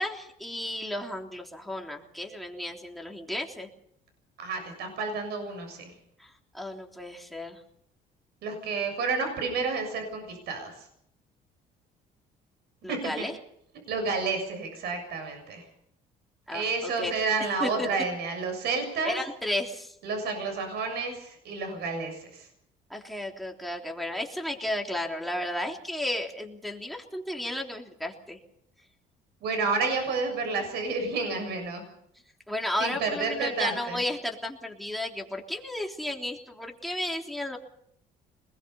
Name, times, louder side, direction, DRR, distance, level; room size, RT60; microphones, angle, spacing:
voice 1, 0.0-3.7 6.2-7.6 12.8-13.4 16.5-17.1 17.6-17.9 19.0-19.9 22.9-28.4 32.5-37.6, left 1 dB, ahead, 3 dB, 3.4 m, -33 dB
voice 2, 4.4-5.9 8.4-10.9 12.9-13.3 13.9-15.7 16.5-19.2 20.0-22.5 29.4-31.8 32.8-34.0, right 4 dB, 75° right, 6 dB, 7.1 m, -30 dB
26.5 x 21.0 x 5.6 m, 0.71 s
cardioid pair, 110°, 17 cm